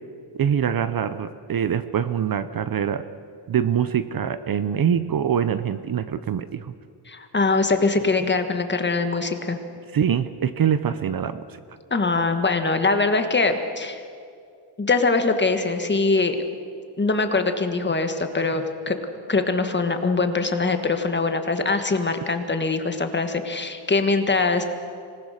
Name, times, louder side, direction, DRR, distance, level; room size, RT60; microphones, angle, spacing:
voice 1, 0.3-3.0 3.5-6.7 9.9-11.4, right 8 dB, 45° right, 13 dB, 0.7 m, -24 dB
voice 2, 7.1-9.6 11.9-14.0 14.8-16.4 17.0-19.0 19.3-24.6, left 3 dB, 20° left, 7 dB, 1.5 m, -22 dB
25.5 x 19.5 x 6.5 m, 2.3 s
wide cardioid pair, 150°, 49 cm